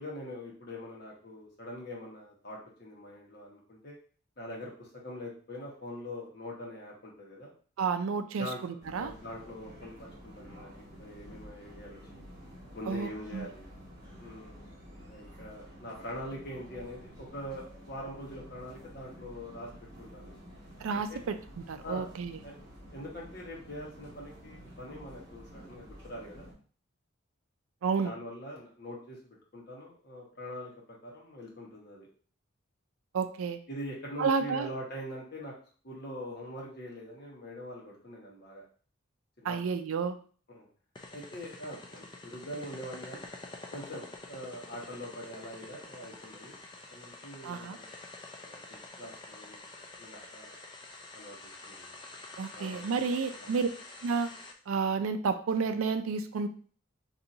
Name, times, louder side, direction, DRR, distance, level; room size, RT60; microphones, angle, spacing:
voice 1, 0.0-4.0 4.4-7.5 8.4-8.6 8.9-12.3 12.7-13.7 14.2-14.6 15.1-20.4 20.9-21.2 21.8-22.1 22.4-22.5 22.9-26.5 28.0-32.1 33.7-35.5 35.8-38.6 39.4-39.7 40.5-40.7 41.1-43.3 43.7-46.6 46.9-47.9 48.4-49.6 50.0-50.6 51.1-52.0 52.5-53.6, equal, 45° left, -3 dB, 1.1 m, -43 dB
voice 2, 7.8-9.1 12.9-13.4 20.8-22.4 27.8-28.1 33.1-33.6 34.2-34.7 39.4-40.2 47.4-47.8 52.4-53.7 54.0-54.4 54.7-56.5, right 5 dB, 75° right, 9 dB, 0.4 m, -31 dB
sound 1, 8.8-26.5, equal, 20° right, 1.4 m, -50 dB
sound 2, 41.0-54.5, left 2 dB, 20° left, 0.4 m, -47 dB
4.2 x 2.7 x 2.6 m, 0.43 s
head